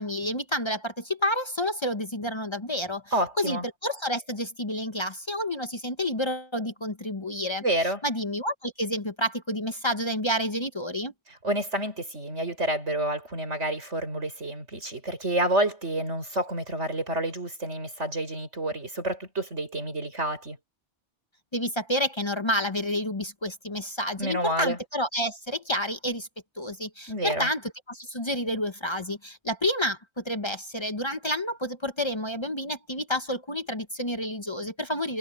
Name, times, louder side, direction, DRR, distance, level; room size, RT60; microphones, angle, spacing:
voice 1, 0.0-3.0 3.4-11.1 21.5-26.3 26.6-35.2, equal, 25° left, 1.1 m, -29 dB
voice 2, 3.1-3.7 7.6-8.0 11.4-20.6 24.2-24.8 27.1-27.5, right 1 dB, 85° right, 7.1 m, -29 dB
omnidirectional pair, 1.2 m